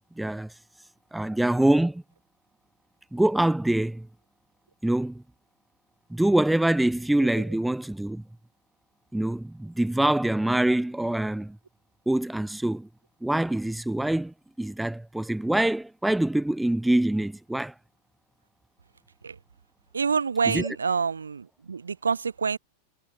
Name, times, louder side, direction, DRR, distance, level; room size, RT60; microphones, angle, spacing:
voice 1, 0.2-0.5 1.1-2.0 3.1-4.1 4.8-5.2 6.1-8.2 9.1-11.6 12.1-12.9 13.2-17.7 20.5-20.6, right 1 dB, 5° right, 0.3 m, -25 dB
voice 2, 19.9-22.6, right 5 dB, 75° right, 1.7 m, -27 dB
figure-of-eight pair, 90°, 0 cm